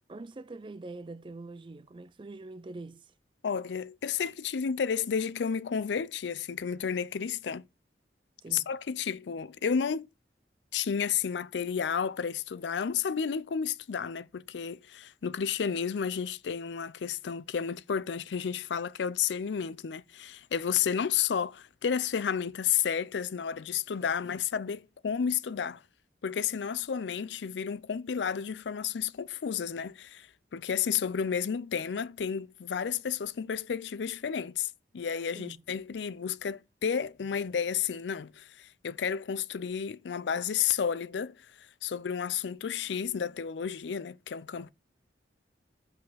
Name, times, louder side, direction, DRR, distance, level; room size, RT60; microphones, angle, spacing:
voice 1, 0.1-3.1 8.4-8.7 35.3-35.6, right 2 dB, 30° right, 0.4 m, -44 dB
voice 2, 3.4-7.6 8.5-10.1 10.7-25.8 26.2-41.5 41.8-44.7, left 7 dB, 85° left, 0.4 m, -32 dB
7.5 x 5.3 x 4.1 m
head